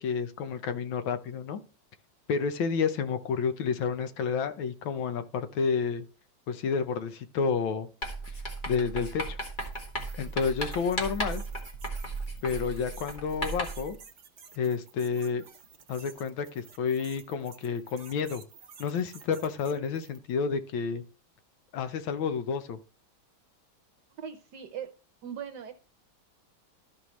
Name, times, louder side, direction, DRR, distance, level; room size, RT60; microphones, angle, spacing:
voice 1, 0.0-1.6 2.3-6.0 6.5-7.9 8.7-9.4 10.2-11.4 12.4-14.0 14.6-15.4 15.9-18.4 18.8-21.0 21.7-22.8, left 6 dB, 80° left, 10 dB, 1.6 m, -30 dB
Writing, 8.0-13.9, right 1 dB, 25° left, 1.7 m, -35 dB
sound 1, 9.6-20.4, right 6 dB, 45° right, 1.0 m, -53 dB
voice 2, 24.2-24.9 25.2-25.7, right 8 dB, 70° right, 7 dB, 1.2 m, -39 dB
13.0 x 5.5 x 3.1 m, 0.35 s
omnidirectional pair, 2.2 m